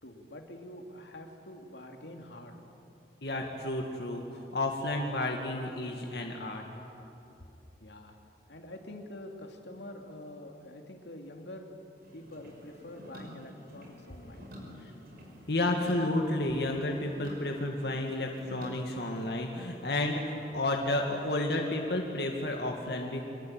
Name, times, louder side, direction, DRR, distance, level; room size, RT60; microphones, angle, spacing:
voice 1, 0.0-2.6 7.8-8.2 8.5-11.7 12.1-14.9, left 1 dB, 85° left, 3 dB, 2.7 m, -46 dB
voice 2, 3.2-6.7 14.8-14.9 15.5-23.2, left 1 dB, 65° left, 1 dB, 2.2 m, -31 dB
sound 1, 12.0-22.7, equal, 55° right, 5.6 m, -50 dB
26.0 x 22.0 x 9.0 m, 2.9 s
head